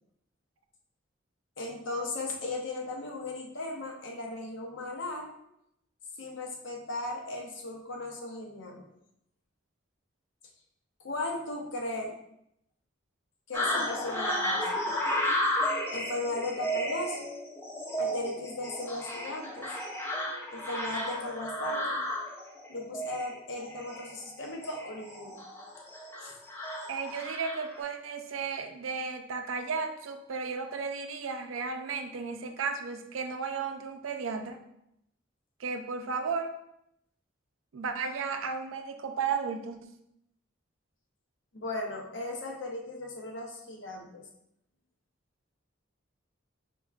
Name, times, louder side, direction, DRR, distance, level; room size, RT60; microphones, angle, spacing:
voice 1, 1.6-5.3 6.2-8.9 11.0-12.2 13.5-15.0 15.9-17.3 18.0-19.7 20.5-22.0 22.7-25.4 26.2-26.4 41.5-44.3, left 2 dB, 70° left, 1 dB, 0.8 m, -37 dB
sound 1, 13.5-27.8, equal, 10° left, 0.6 m, -33 dB
voice 2, 26.9-34.6 35.6-36.5 37.7-39.9, right 5 dB, 90° right, 6 dB, 0.5 m, -34 dB
4.6 x 3.5 x 2.3 m, 0.78 s
head